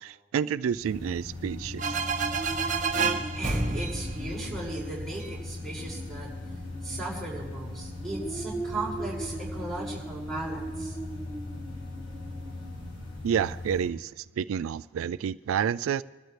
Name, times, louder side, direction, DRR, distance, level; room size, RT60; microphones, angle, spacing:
voice 1, 0.0-2.0 13.2-16.0, right 8 dB, 90° right, 0.3 m, -29 dB
sound 1, 0.7-13.3, right 2 dB, 20° left, 1.6 m, -41 dB
sound 2, 0.8-13.9, left 2 dB, 70° left, 3.6 m, -39 dB
sound 3, 1.8-5.4, right 4 dB, 40° right, 1.2 m, -30 dB
voice 2, 2.6-6.3 6.8-11.0, right 2 dB, ahead, 5.7 m, -37 dB
25.0 x 12.5 x 3.3 m
head